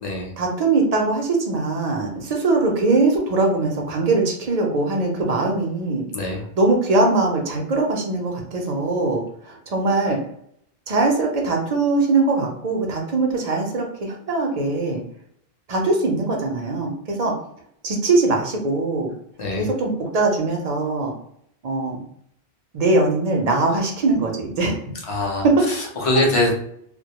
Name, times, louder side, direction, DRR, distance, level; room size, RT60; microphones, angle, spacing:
voice 1, 0.4-6.0 6.6-10.2 10.9-15.0 15.7-17.3 17.8-19.1 19.6-21.1 21.6-22.0 22.7-24.8 25.4-25.5, right 3 dB, 55° right, 1 dB, 0.5 m, -21 dB
voice 2, 25.0-26.5, left 2 dB, 40° left, -1 dB, 0.5 m, -23 dB
2.1 x 2.0 x 2.8 m, 0.68 s
omnidirectional pair, 1.1 m